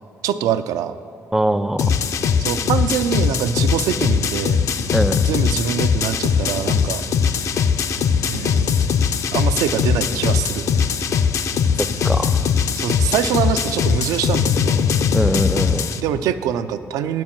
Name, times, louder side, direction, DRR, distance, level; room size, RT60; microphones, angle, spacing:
voice 1, 0.2-0.9 2.4-4.6 5.3-7.0 8.2-8.9 9.3-10.6 12.7-14.8 16.0-17.2, right 9 dB, 90° right, 12 dB, 0.3 m, -24 dB
voice 2, 1.3-1.9 4.9-5.2 11.8-12.5 15.1-15.9, right 1 dB, 5° right, 13 dB, 0.3 m, -22 dB
sound 1, 1.8-16.0, left 6 dB, 60° left, 0.4 m, -20 dB
9.9 x 4.6 x 7.3 m, 2.6 s
cardioid pair, 80°, 6 cm